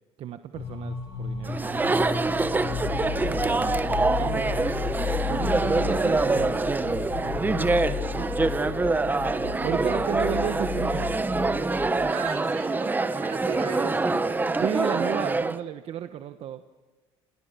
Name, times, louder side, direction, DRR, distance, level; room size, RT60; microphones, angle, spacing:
voice 1, 0.2-1.6 2.9-3.8 4.0-4.7 5.3-6.5 7.2-7.7 8.1-8.6 9.6-11.1 14.6-16.6, right 10 dB, 55° right, 9 dB, 1.2 m, -34 dB
sound 1, 0.5-12.1, left 9 dB, 85° left, 6.6 m, -34 dB
Chatter, 1.4-15.6, right 3 dB, 15° right, 1.4 m, -25 dB
voice 2, 4.2-4.8 12.1-14.4, right 8 dB, 75° right, 3 dB, 4.5 m, -38 dB
29.5 x 28.5 x 7.0 m, 1.3 s
cardioid pair, 110°, 12 cm